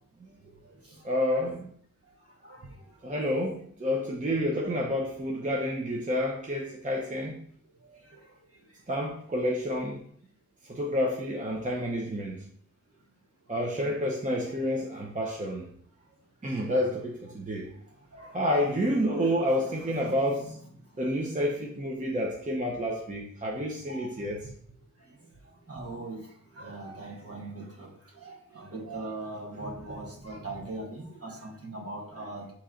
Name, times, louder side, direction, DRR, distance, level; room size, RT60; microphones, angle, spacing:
voice 1, 1.0-1.7 3.0-7.4 8.9-10.0 10.6-12.4 13.5-15.7 16.4-17.7 18.3-20.6 21.0-24.5 29.6-29.7, equal, 25° right, -2 dB, 0.7 m, -29 dB
voice 2, 18.1-18.8 19.8-20.5 23.9-24.1 25.7-26.2 26.6-27.9 28.2-32.4, right 2 dB, 45° right, -2 dB, 1.3 m, -40 dB
4.4 x 3.0 x 3.7 m, 0.62 s
wide cardioid pair, 105°, 33 cm